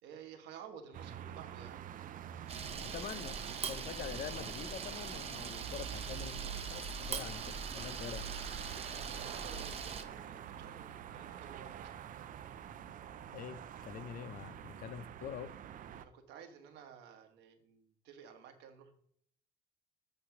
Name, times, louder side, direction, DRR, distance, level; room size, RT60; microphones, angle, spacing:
voice 1, 0.0-1.8 9.1-12.1 14.2-14.3 16.0-18.9, right 7 dB, 85° right, 1.3 m, -53 dB
sound 1, 0.9-16.0, right 9 dB, 55° right, 0.5 m, -47 dB
Camera, 2.5-10.0, right 5 dB, 35° right, 0.9 m, -42 dB
voice 2, 2.8-3.4 3.7-8.3 13.3-15.5, left 9 dB, 55° left, 0.6 m, -45 dB
8.4 x 3.3 x 5.8 m
cardioid pair, 110°, 17 cm